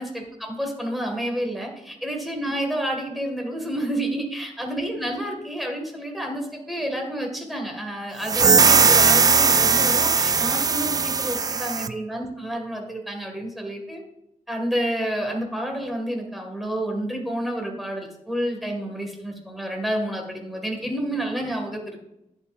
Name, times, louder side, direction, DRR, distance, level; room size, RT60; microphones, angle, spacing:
voice 1, 0.0-14.0 14.5-22.0, right 1 dB, ahead, 1 dB, 1.9 m, -29 dB
sound 1, 8.2-11.9, right 5 dB, 30° right, 0.4 m, -18 dB
11.0 x 9.2 x 2.5 m, 0.84 s
wide cardioid pair, 165°, 13 cm